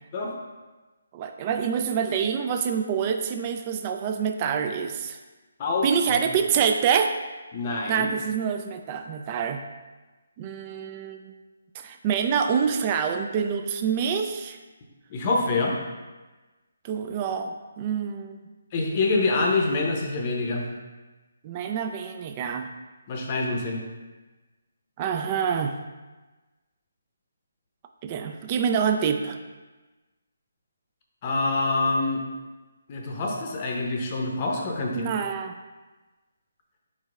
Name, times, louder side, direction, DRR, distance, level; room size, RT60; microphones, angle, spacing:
voice 1, 1.1-5.2 5.8-7.2 7.9-9.6 10.4-11.3 11.8-14.6 16.8-18.4 21.4-22.7 25.0-25.8 28.0-29.4 35.0-35.5, right 7 dB, 30° right, 6 dB, 0.3 m, -26 dB
voice 2, 5.6-6.2 7.5-8.1 15.1-15.8 18.7-20.7 23.1-23.8 31.2-32.2 32.9-35.1, left 3 dB, 35° left, 0 dB, 0.7 m, -26 dB
4.6 x 4.3 x 2.4 m, 1.2 s
figure-of-eight pair, 150°, 0 cm